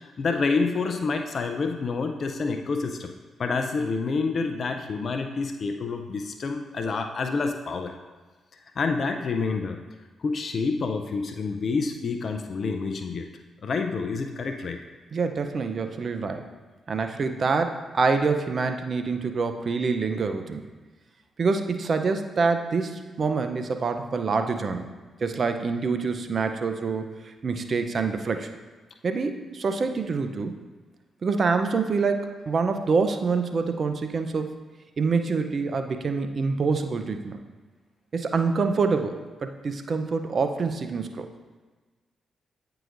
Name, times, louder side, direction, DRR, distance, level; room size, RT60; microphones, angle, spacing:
voice 1, 0.0-3.1 3.4-7.9 8.8-9.8 10.2-13.3 13.6-14.8, left 4 dB, 55° left, 5 dB, 0.4 m, -28 dB
voice 2, 15.1-16.5 16.9-20.6 21.4-24.9 25.2-28.5 29.0-30.5 31.2-34.5 35.0-37.4 38.1-41.3, right 4 dB, 55° right, 7 dB, 0.6 m, -26 dB
9.0 x 4.8 x 2.5 m, 1.3 s
hypercardioid pair, 45°, 0 cm